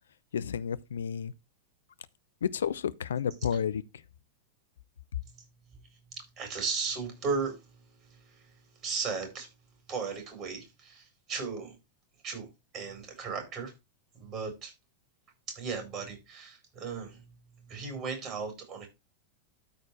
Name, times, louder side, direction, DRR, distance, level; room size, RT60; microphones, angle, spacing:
voice 1, 0.3-1.3 2.4-3.8, left 8 dB, 65° left, 0.6 m, -31 dB
voice 2, 6.4-7.6 8.1-8.5 8.8-9.5 9.9-11.8 12.2-12.5 12.7-13.7 14.1-14.7 15.5-17.2 17.6-18.9, right 5 dB, 35° right, 4.7 m, -36 dB
13.0 x 4.4 x 4.6 m
figure-of-eight pair, 90°, 0 cm